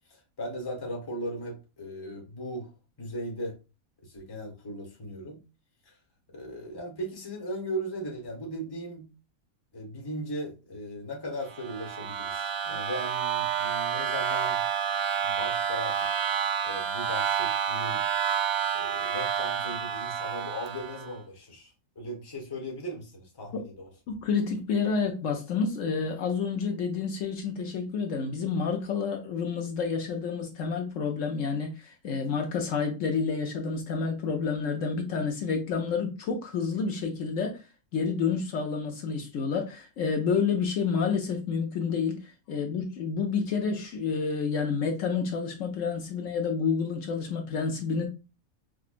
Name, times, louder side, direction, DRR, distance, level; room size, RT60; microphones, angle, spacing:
voice 1, 0.1-2.7 3.0-3.6 4.0-5.4 5.8-6.0 6.3-9.1 9.7-14.6 15.2-16.1 16.6-18.1 18.7-23.9, equal, 20° left, 0.9 m, -37 dB
sound 1, 11.5-21.1, right 7 dB, 90° right, 1.0 m, -29 dB
voice 2, 24.1-37.6 37.9-48.1, left 5 dB, 70° left, 1.0 m, -29 dB
4.9 x 2.3 x 2.4 m
omnidirectional pair, 1.4 m